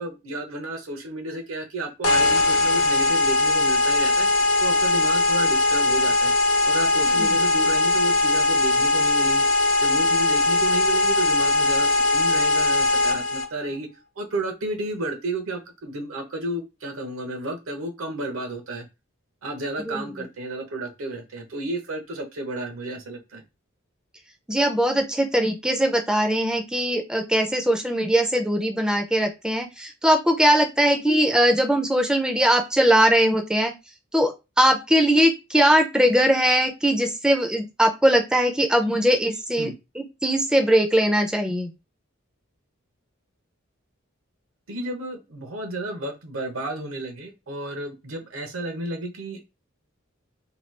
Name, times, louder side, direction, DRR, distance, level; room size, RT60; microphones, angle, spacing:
voice 1, 0.0-4.3 4.6-6.3 6.6-9.4 9.8-13.9 14.2-18.9 19.4-23.4 39.6-39.8 44.7-49.5, right 2 dB, 80° right, 4 dB, 0.8 m, -32 dB
sound 1, 2.0-13.4, left 2 dB, 85° left, 0.7 m, -20 dB
voice 2, 24.5-33.7 34.1-39.7 40.0-41.7, equal, 5° right, 4 dB, 0.3 m, -20 dB
2.9 x 2.2 x 3.2 m, 0.26 s
head